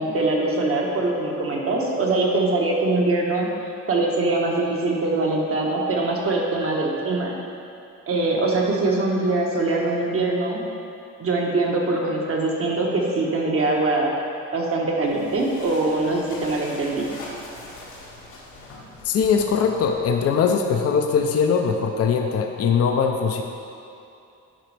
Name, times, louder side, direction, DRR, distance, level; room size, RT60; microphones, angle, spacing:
voice 1, 0.0-7.3 8.1-10.6 11.2-14.1 14.5-17.0, right 2 dB, 50° right, -1 dB, 1.2 m, -23 dB
sound 1, 15.0-20.6, left 2 dB, 80° left, 1.4 m, -42 dB
voice 2, 19.0-23.4, left 6 dB, 55° left, 3 dB, 0.6 m, -21 dB
10.0 x 4.0 x 3.3 m, 2.7 s
cardioid pair, 90°, 30 cm